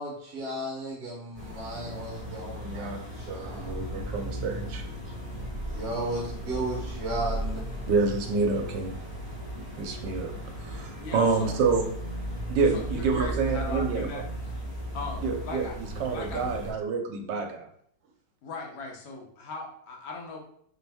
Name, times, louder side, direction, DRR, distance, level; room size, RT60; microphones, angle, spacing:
voice 1, 0.0-3.8 5.7-7.6, right 1 dB, 40° right, -3 dB, 0.9 m, -35 dB
sound 1, 1.3-16.7, right 1 dB, 15° left, 1.5 m, -36 dB
voice 2, 2.6-3.0 3.3-4.8 7.9-8.9 9.8-10.3 10.6-11.8 12.5-14.1 15.2-17.7, right 4 dB, 70° right, 4 dB, 1.2 m, -28 dB
voice 3, 11.0-11.6 12.7-14.2 14.9-15.7 16.1-16.4 18.4-20.4, left 3 dB, 55° left, 0 dB, 0.7 m, -39 dB
4.3 x 2.6 x 3.4 m, 0.65 s
omnidirectional pair, 2.1 m